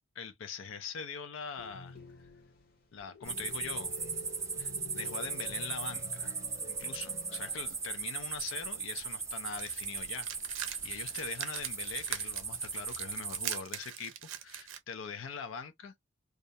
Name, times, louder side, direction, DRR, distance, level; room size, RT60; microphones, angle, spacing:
voice 1, 0.0-2.0 2.9-4.3 4.6-6.3 6.7-14.1 14.4-15.9, left 6 dB, 80° left, 0.4 m, -43 dB
sound 1, 1.6-8.1 8.4-8.5 10.2-10.8 11.9-12.6, left 1 dB, 50° left, 0.7 m, -49 dB
sound 2, 3.2-13.6, right 5 dB, 15° right, 0.5 m, -38 dB
sound 3, 9.5-14.8, right 10 dB, 80° right, 0.5 m, -42 dB
2.4 x 2.0 x 2.6 m
head